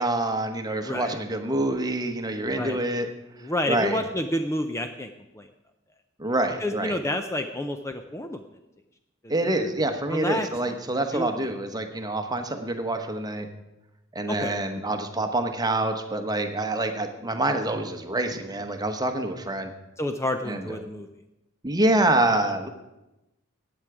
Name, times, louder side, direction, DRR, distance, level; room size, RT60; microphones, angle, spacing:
voice 1, 0.0-3.1 3.7-4.0 6.2-7.0 9.3-13.5 14.1-19.7 20.4-20.8 21.6-22.7, right 2 dB, 20° right, 6 dB, 1.0 m, -26 dB
voice 2, 0.8-1.2 2.5-2.8 3.4-5.1 5.4-5.5 6.6-8.4 9.2-9.6 10.1-10.5 11.1-11.5 14.3-14.6 20.0-21.1, left 1 dB, 15° left, 6 dB, 0.5 m, -29 dB
15.0 x 8.9 x 4.8 m, 0.96 s
head